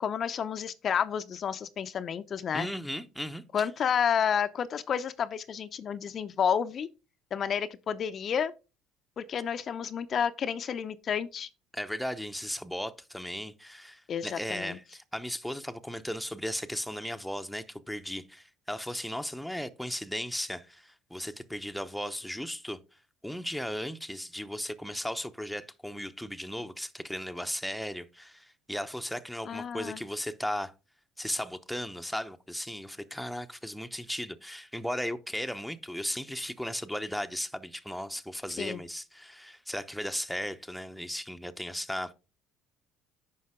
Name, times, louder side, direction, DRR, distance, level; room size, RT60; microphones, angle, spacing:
voice 1, 0.0-2.7 3.5-6.9 7.3-8.5 9.2-11.5 14.1-14.8 29.5-30.0 38.6-38.8, left 7 dB, 45° left, 0.6 m, -30 dB
voice 2, 2.5-3.7 11.7-22.8 23.2-30.7 31.2-42.1, equal, ahead, 0.8 m, -36 dB
9.4 x 5.6 x 3.6 m
hypercardioid pair, 70°, 0 cm